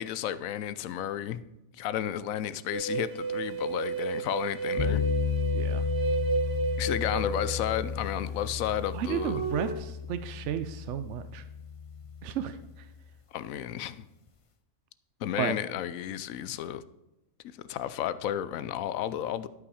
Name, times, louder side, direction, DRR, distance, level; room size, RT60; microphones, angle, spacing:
voice 1, 0.0-1.4 1.7-5.0 6.8-9.4 13.3-14.1 15.2-16.8 17.7-19.5, left 11 dB, 85° left, 15 dB, 1.0 m, -32 dB
sound 1, 2.7-8.2 9.0-9.7, right 4 dB, 50° right, 1.4 m, -32 dB
sound 2, 4.8-12.9, left 7 dB, 40° left, 0.4 m, -33 dB
voice 2, 5.5-5.8 8.9-11.4 12.2-12.5 15.4-15.5, right 9 dB, 70° right, 11 dB, 0.8 m, -33 dB
12.0 x 5.7 x 4.8 m, 0.94 s
omnidirectional pair, 1.4 m